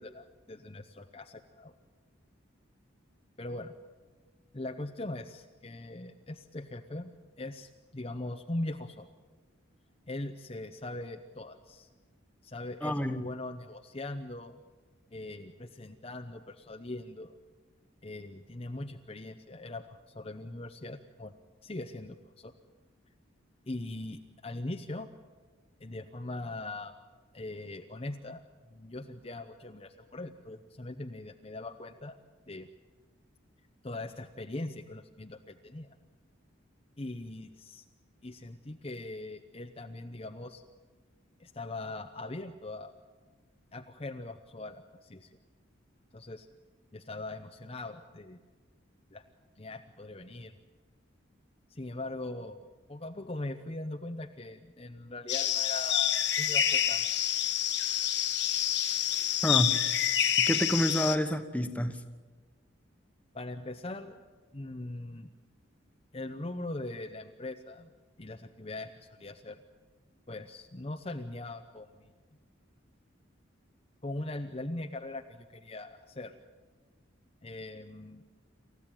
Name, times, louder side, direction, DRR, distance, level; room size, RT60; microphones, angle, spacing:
voice 1, 0.0-1.7 3.4-3.7 4.5-7.1 7.4-9.1 10.1-11.9 12.4-14.6 15.1-17.3 18.0-21.3 21.6-22.5 23.7-25.1 25.8-26.9 27.3-28.4 28.7-32.2 32.5-32.7 33.8-35.9 37.0-37.8 38.2-40.6 41.4-42.9 43.7-45.4 46.1-46.5 46.9-48.4 49.1-49.2 49.6-50.5 51.7-52.6 52.9-57.3 63.3-64.2 64.5-65.3 66.1-67.9 68.2-69.6 70.3-72.1 74.0-76.3 77.4-78.2, left 2 dB, 30° left, 5 dB, 0.8 m, -41 dB
voice 2, 12.8-13.2 59.4-59.7 60.5-61.9, equal, 5° left, 7 dB, 1.3 m, -28 dB
sound 1, 55.3-61.2, left 10 dB, 55° left, 1.3 m, -28 dB
28.0 x 14.5 x 9.0 m, 1.3 s
head